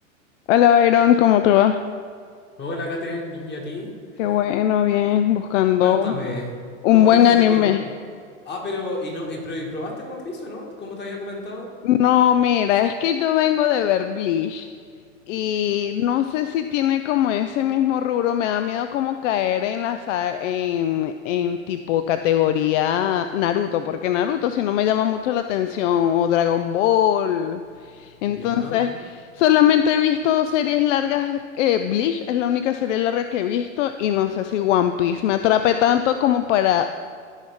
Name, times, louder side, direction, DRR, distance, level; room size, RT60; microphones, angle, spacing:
voice 1, 0.5-1.8 4.2-6.2 6.8-7.8 11.8-14.7 15.3-36.9, left 10 dB, 65° left, 9 dB, 0.5 m, -20 dB
voice 2, 2.6-4.4 5.8-6.6 6.9-7.7 8.5-11.7 28.3-28.8, left 2 dB, 25° left, 0 dB, 1.9 m, -31 dB
13.5 x 5.5 x 3.6 m, 2.1 s
hypercardioid pair, 105°, 40 cm